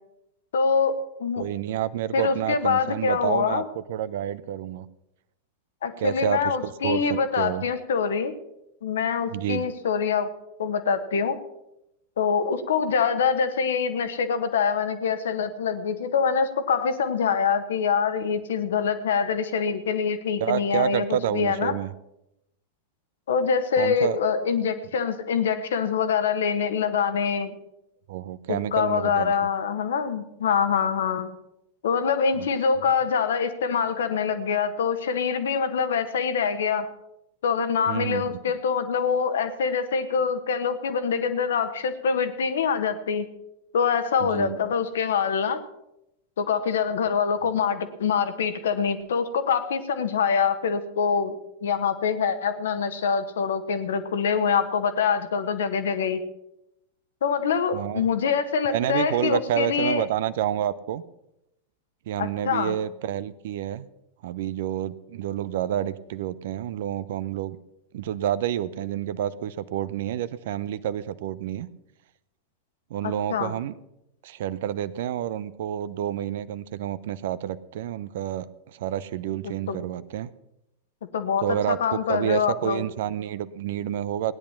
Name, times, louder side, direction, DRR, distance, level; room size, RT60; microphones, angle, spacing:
voice 1, 0.5-1.4 2.1-3.6 5.8-8.3 8.8-10.3 10.6-11.4 12.2-21.7 23.3-27.6 28.5-31.3 31.8-36.9 37.4-43.3 43.7-45.6 46.4-51.3 51.6-56.2 57.2-60.0 62.2-62.7 73.0-73.5 79.4-79.8 81.1-82.8, left 6 dB, 60° left, 10 dB, 1.3 m, -25 dB
voice 2, 1.4-4.9 6.0-7.6 9.3-9.7 20.4-21.9 23.8-24.2 28.1-29.3 32.4-32.5 32.8-32.9 37.9-38.4 44.2-44.6 57.7-58.1 58.7-61.0 62.1-63.9 64.2-67.6 67.9-71.7 72.9-73.7 74.2-80.3 81.4-84.3, right 11 dB, 55° right, 17 dB, 0.6 m, -29 dB
17.5 x 10.5 x 5.8 m, 0.84 s
figure-of-eight pair, 90°, 0 cm